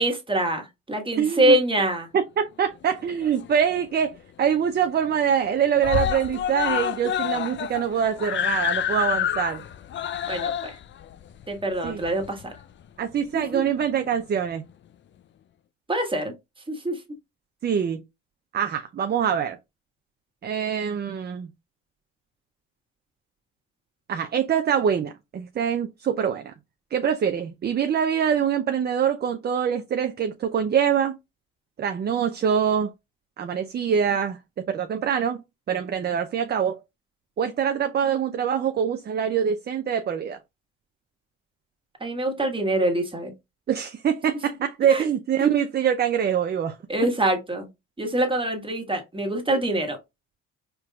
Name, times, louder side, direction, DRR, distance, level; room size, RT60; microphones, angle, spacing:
voice 1, 0.0-2.1 10.3-10.8 11.5-12.5 13.3-13.7 15.9-16.3 16.7-17.0 42.0-43.3 44.9-45.1 46.9-47.7 48.0-50.0, right 1 dB, 15° right, 1.4 m, -25 dB
voice 2, 1.2-1.6 2.1-9.6 11.8-12.0 13.0-14.6 17.6-18.0 18.5-19.6 20.4-21.5 24.1-26.5 26.9-31.2 31.8-32.9 33.4-35.4 35.7-36.8 37.4-40.4 43.7-46.8, right 8 dB, 30° right, 0.5 m, -24 dB
Screaming, 2.9-3.8 4.2-4.3 4.6-4.7 5.0-5.5 5.8-12.6 13.5-13.6, left 10 dB, 35° left, 0.4 m, -28 dB
4.5 x 3.0 x 2.3 m
supercardioid pair, 65°, 33 cm